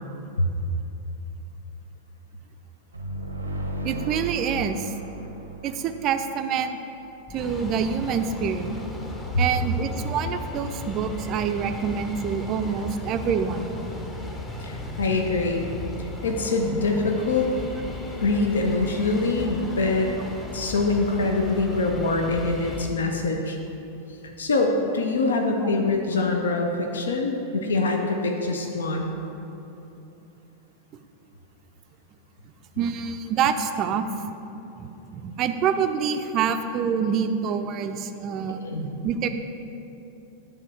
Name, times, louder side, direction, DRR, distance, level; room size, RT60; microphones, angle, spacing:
sound 1, 2.9-6.7, right 1 dB, 80° right, 0.7 m, -35 dB
voice 1, 3.8-4.9 5.6-6.8 7.3-8.8 9.4-13.8 25.7-25.8 32.8-34.1 34.8-38.6 39.0-39.3, right 7 dB, 35° right, 8 dB, 0.4 m, -26 dB
sound 2, 7.3-22.9, left 2 dB, 20° left, 0.8 m, -36 dB
voice 2, 14.6-15.7 16.0-17.5 18.2-20.1 20.5-23.6 24.4-29.1 38.6-38.9, left 3 dB, 70° left, 3 dB, 0.6 m, -24 dB
9.9 x 3.7 x 4.7 m, 2.9 s
figure-of-eight pair, 90°, 0 cm